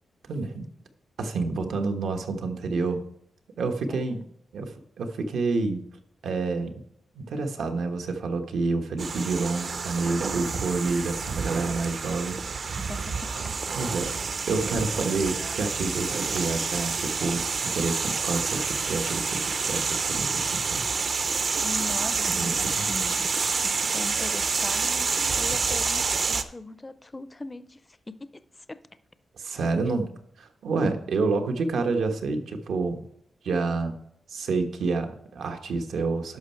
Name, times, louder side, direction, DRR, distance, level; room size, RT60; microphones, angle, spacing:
voice 1, 0.3-0.7 1.2-3.0 3.6-4.2 4.5-4.7 5.0-5.8 6.2-6.7 7.1-12.9 13.7-14.1 14.5-20.8 22.3-22.9 29.4-30.1 30.4-33.0 33.4-33.9 34.3-36.4, right 3 dB, 80° right, 1.2 m, -28 dB
voice 2, 3.9-4.2 12.8-13.5 21.6-23.3 23.6-28.3 28.6-28.8 29.4-29.6, left 2 dB, 15° left, 0.4 m, -40 dB
sound 1, 9.0-26.4, right 5 dB, 50° right, 0.6 m, -28 dB
11.5 x 6.3 x 4.5 m
wide cardioid pair, 135°, 0 cm